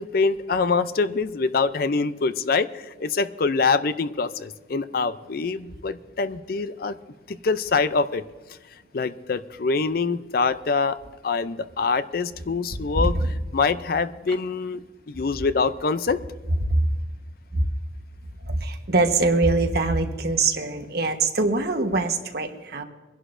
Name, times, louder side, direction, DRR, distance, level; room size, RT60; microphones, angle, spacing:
voice 1, 0.0-7.0 7.3-8.2 8.9-13.2 13.5-16.2, left 4 dB, 55° left, 13 dB, 0.5 m, -25 dB
voice 2, 13.0-13.3 14.3-14.4 16.7-16.8 17.5-17.7 18.4-22.8, right 2 dB, 55° right, 5 dB, 1.2 m, -23 dB
24.0 x 11.0 x 2.6 m, 1.2 s
head